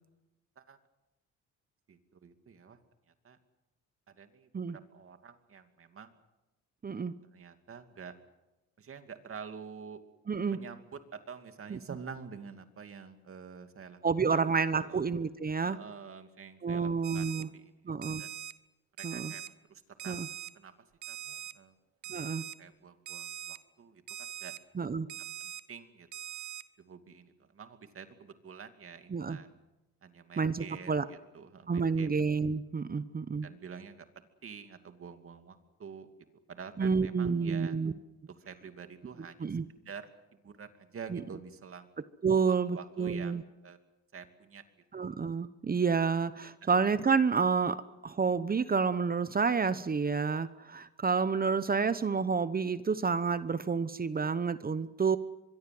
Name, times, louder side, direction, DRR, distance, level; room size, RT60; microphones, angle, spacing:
voice 1, 1.9-2.8 3.2-3.4 4.1-6.1 7.3-8.1 8.8-10.0 10.5-14.0 14.3-15.1 15.6-17.8 18.2-18.3 19.0-20.2 20.5-20.7 21.1-21.7 22.1-24.6 25.7-26.1 26.8-29.5 30.0-32.1 33.4-36.1 36.5-37.8 38.3-41.9 42.5-43.4 43.6-43.8 44.1-44.6 45.0-45.1 46.6-46.7, right 6 dB, 45° right, 8 dB, 2.6 m, -48 dB
voice 2, 6.8-7.1 10.3-10.6 11.7-11.8 14.0-15.8 16.6-17.5 17.9-18.2 19.0-19.3 20.1-20.3 22.1-22.4 24.8-25.1 29.1-29.4 30.4-31.0 31.7-33.5 36.8-37.9 39.4-39.6 41.1-41.2 42.2-43.4 44.9-47.8 48.0-55.2, right 5 dB, 30° right, 14 dB, 1.0 m, -29 dB
Alarm, 17.0-17.4 18.0-18.5 19.0-19.5 20.0-20.5 21.0-21.5 22.0-22.5 23.1-23.6 24.1-24.6 25.1-25.6 26.1-26.6, right 11 dB, 80° right, 1.1 m, -42 dB
24.5 x 23.0 x 7.8 m, 1.0 s
cardioid pair, 90°, 30 cm